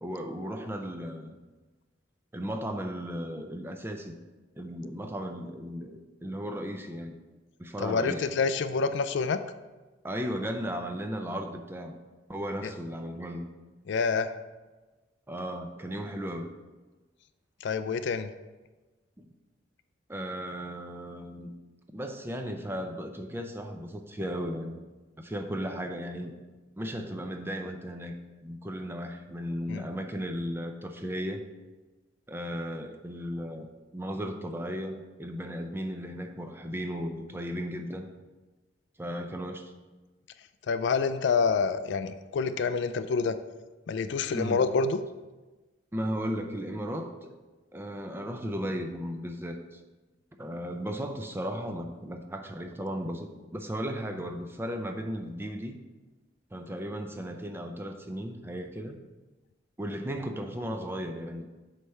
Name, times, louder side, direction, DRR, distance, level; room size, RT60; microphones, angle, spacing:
voice 1, 0.0-1.4 2.3-4.1 4.6-7.2 7.6-8.3 10.0-11.9 12.3-13.5 15.3-16.5 19.2-19.3 20.1-21.5 21.9-24.8 25.2-26.3 26.8-28.1 28.4-31.4 32.3-38.1 39.0-39.7 44.3-44.6 45.9-47.3 47.7-49.8 50.4-55.8 56.5-59.0 59.8-61.5, equal, 10° right, 5 dB, 0.5 m, -35 dB
voice 2, 7.8-9.4 13.9-14.3 17.6-18.3 29.7-29.9 40.7-43.4 43.9-45.0, left 5 dB, 65° left, 11 dB, 0.4 m, -27 dB
7.9 x 3.3 x 5.5 m, 1.2 s
head